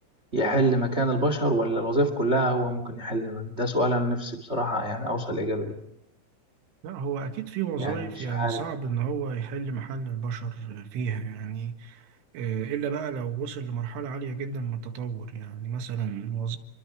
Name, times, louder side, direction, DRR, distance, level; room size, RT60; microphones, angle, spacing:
voice 1, 0.3-5.8 7.8-8.0 8.3-8.6, right 1 dB, 50° right, 0.7 m, -26 dB
voice 2, 6.8-16.6, right 7 dB, 85° right, 4.3 m, -32 dB
28.5 x 23.5 x 5.0 m
omnidirectional pair, 5.5 m